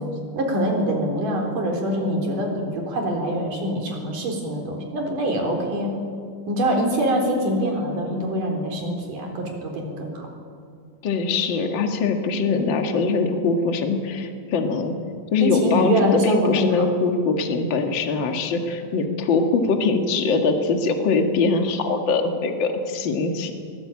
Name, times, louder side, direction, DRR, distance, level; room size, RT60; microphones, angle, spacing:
voice 1, 0.0-5.9 6.5-10.3 15.4-16.8, right 1 dB, 70° right, 2 dB, 5.4 m, -24 dB
voice 2, 11.0-15.0 15.3-23.5, left 4 dB, 40° left, 4 dB, 2.1 m, -22 dB
23.0 x 19.0 x 8.7 m, 2.2 s
omnidirectional pair, 3.9 m